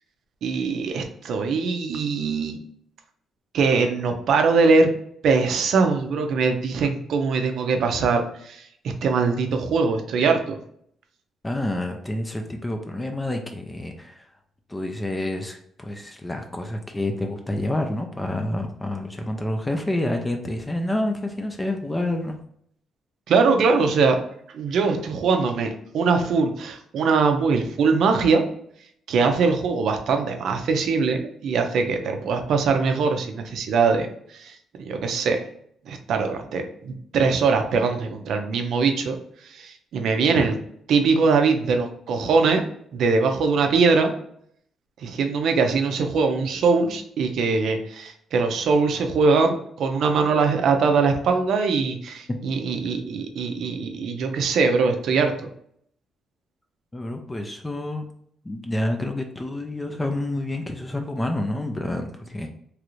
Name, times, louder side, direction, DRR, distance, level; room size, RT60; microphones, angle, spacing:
voice 1, 0.4-2.6 3.5-4.9 5.2-8.7 9.0-10.6 23.3-24.2 24.5-28.4 29.1-35.4 35.9-39.2 39.4-40.6 40.9-42.6 42.9-44.1 45.0-55.5, right 4 dB, 70° right, 5 dB, 0.5 m, -22 dB
voice 2, 11.4-14.3 14.7-22.4 52.3-52.4 56.9-58.1 58.4-62.5, left 1 dB, 15° left, 4 dB, 0.4 m, -28 dB
3.1 x 2.5 x 3.0 m, 0.67 s
cardioid pair, 90°, 0 cm